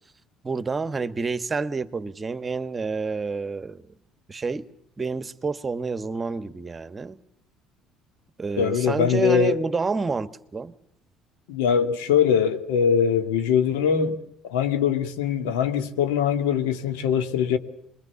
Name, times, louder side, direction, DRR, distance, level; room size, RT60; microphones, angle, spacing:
voice 1, 0.4-3.9 4.3-4.7 5.0-7.2 8.4-10.7, right 4 dB, 30° right, 1.4 m, -28 dB
voice 2, 8.6-9.5 11.5-14.2 14.4-17.6, left 7 dB, 85° left, 2.0 m, -22 dB
25.5 x 22.5 x 7.1 m
hypercardioid pair, 65°, 0 cm